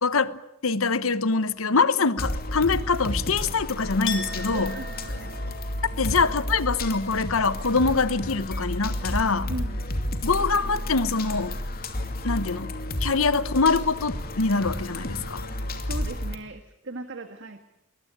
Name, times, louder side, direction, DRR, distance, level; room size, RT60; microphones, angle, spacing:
voice 1, 0.0-4.7 6.0-9.5 10.2-11.6 12.2-12.7 13.0-15.4, left 4 dB, 90° left, 1.1 m, -24 dB
sound 1, 2.2-16.4, left 1 dB, 50° left, 2.7 m, -31 dB
Chink clink, 4.1-9.6 9.9-10.7, left 3 dB, 65° left, 2.9 m, -41 dB
voice 2, 4.5-5.4 6.0-6.1 9.5-9.8 15.8-17.6, right 2 dB, 60° right, 1.7 m, -38 dB
23.0 x 21.0 x 8.9 m
head